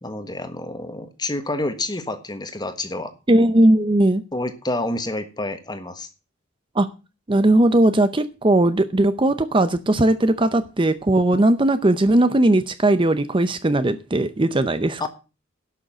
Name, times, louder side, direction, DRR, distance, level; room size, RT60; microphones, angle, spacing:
voice 1, 0.0-3.1 4.3-6.1 15.0-15.1, left 2 dB, 20° left, 1.4 m, -28 dB
voice 2, 3.3-4.2 6.7-6.9 7.3-15.1, right 1 dB, 25° right, 0.6 m, -18 dB
11.5 x 6.5 x 7.4 m
head